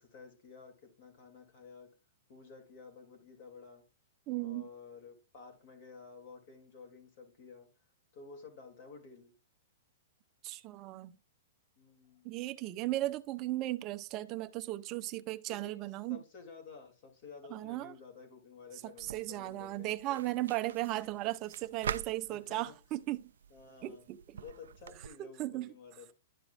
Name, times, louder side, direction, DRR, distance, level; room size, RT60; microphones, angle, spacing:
voice 1, 0.0-1.9 2.3-3.8 4.4-7.7 8.1-9.3 11.8-12.3 15.5-20.2 22.3-22.8 23.5-24.0 24.3-26.1, left 5 dB, 40° left, 2.7 m, -52 dB
voice 2, 4.3-4.7 10.4-11.1 12.2-16.2 17.5-17.9 18.8-23.3 23.8-24.4 25.2-25.7, right 17 dB, 25° right, 0.5 m, -36 dB
sound 1, 19.0-25.1, right 8 dB, 85° right, 0.3 m, -45 dB
11.5 x 4.7 x 2.5 m
hypercardioid pair, 170°, 0 cm